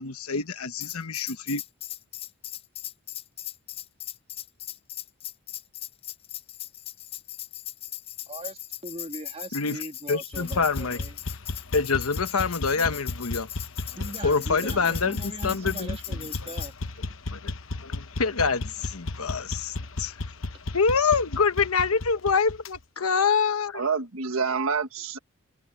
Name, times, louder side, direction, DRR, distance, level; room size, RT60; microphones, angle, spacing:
voice 1, 0.0-1.6 9.5-9.8 10.1-11.0 11.7-13.5 14.2-16.0 17.3-17.5 17.8-20.1 20.7-23.9, left 5 dB, 85° left, 1.2 m, -26 dB
Tambourine, 0.8-16.7, left 12 dB, 25° left, 0.4 m, -39 dB
voice 2, 8.3-11.2 14.0-16.7 23.0-23.1, right 2 dB, 25° right, 2.0 m, -40 dB
sound 1, 10.3-22.8, left 2 dB, 65° left, 1.1 m, -34 dB
voice 3, 23.7-25.2, right 5 dB, 75° right, 1.5 m, -27 dB
head